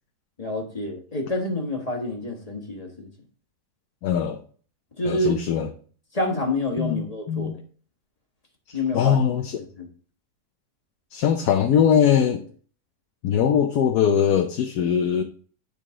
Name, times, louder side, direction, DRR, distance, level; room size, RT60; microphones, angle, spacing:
voice 1, 0.4-3.1 5.0-5.4 6.1-7.6 8.7-9.1 9.8-9.9, left 2 dB, 25° left, 1.4 m, -27 dB
voice 2, 4.0-4.4 5.0-5.7 6.8-7.6 8.7-9.7 11.1-12.4 13.2-15.2, left 8 dB, 75° left, 1.2 m, -21 dB
10.0 x 4.1 x 3.7 m
omnidirectional pair, 1.7 m